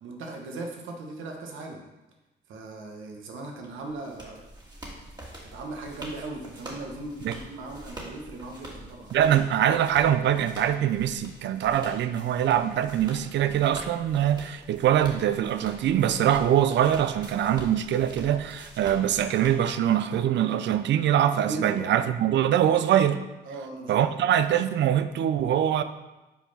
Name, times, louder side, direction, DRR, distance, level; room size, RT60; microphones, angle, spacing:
voice 1, 0.0-1.8 2.5-4.4 5.4-9.1 21.3-21.9 23.4-24.4, right 2 dB, 80° right, 2 dB, 1.2 m, -38 dB
sound 1, 3.6-20.2, right 1 dB, 20° right, 1.7 m, -45 dB
voice 2, 9.1-23.3 23.9-25.8, right 10 dB, 65° right, 11 dB, 0.5 m, -23 dB
5.7 x 4.5 x 5.6 m, 1.0 s
cardioid pair, 90°, 20 cm